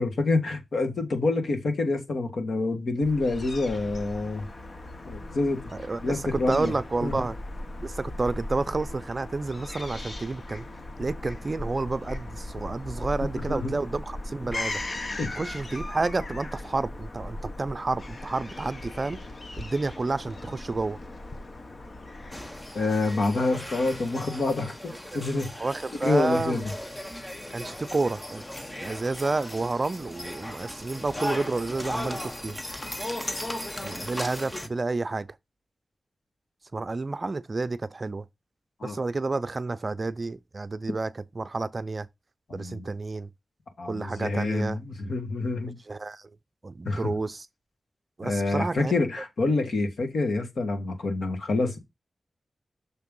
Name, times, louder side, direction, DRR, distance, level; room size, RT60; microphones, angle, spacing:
voice 1, 0.0-4.4 5.0-5.6 6.0-6.7 7.0-7.3 13.3-13.8 15.2-15.4 22.7-25.6 26.0-26.6 38.8-39.0 42.5-42.8 43.8-45.8 46.8-47.1 48.2-51.8, left 3 dB, 85° left, 1.6 m, -27 dB
Fowl / Gull seagull, 3.0-22.9, left 2 dB, 45° left, 0.8 m, -38 dB
voice 2, 5.7-7.4 7.8-10.7 11.0-14.8 15.3-19.2 19.6-21.0 23.5-23.6 25.1-25.2 25.6-26.6 27.5-28.4 28.8-32.6 33.8-35.3 36.7-38.2 38.8-42.1 42.5-43.3 43.9-44.8 45.9-46.3 46.6-47.5 48.2-48.9, right 3 dB, 40° right, 0.5 m, -30 dB
sound 1, 22.3-34.7, left 1 dB, 20° left, 0.9 m, -37 dB
6.6 x 3.6 x 5.4 m
wide cardioid pair, 110°, 0 cm